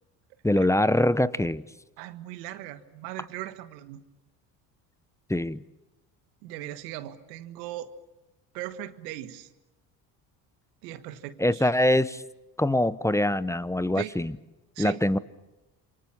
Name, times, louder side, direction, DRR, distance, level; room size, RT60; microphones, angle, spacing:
voice 1, 0.4-1.6 5.3-5.6 11.4-12.2 12.6-14.3 14.8-15.2, left 1 dB, 5° left, 17 dB, 0.9 m, -23 dB
voice 2, 2.0-4.0 6.4-7.9 8.5-9.5 10.8-11.7 14.0-14.1 14.8-15.0, right 14 dB, 85° right, 11 dB, 1.6 m, -38 dB
28.0 x 25.0 x 7.2 m, 1.0 s
hypercardioid pair, 65°, 49 cm